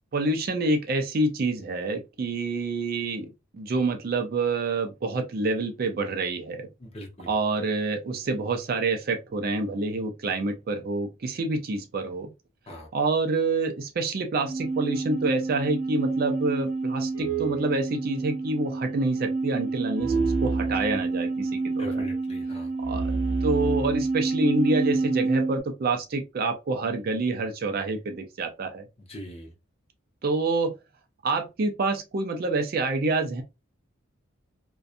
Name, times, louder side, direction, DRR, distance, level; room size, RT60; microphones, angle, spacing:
voice 1, 0.1-6.7 7.3-12.3 12.9-21.9 22.8-23.1 23.4-28.9 30.2-30.7 31.2-33.4, right 3 dB, 45° right, 0.4 m, -27 dB
voice 2, 6.8-7.3 12.7-12.9 21.8-22.7 29.1-29.5, equal, 30° left, 0.7 m, -40 dB
sound 1, 14.4-25.6, right 3 dB, 65° right, 0.8 m, -28 dB
2.6 x 2.2 x 2.4 m
head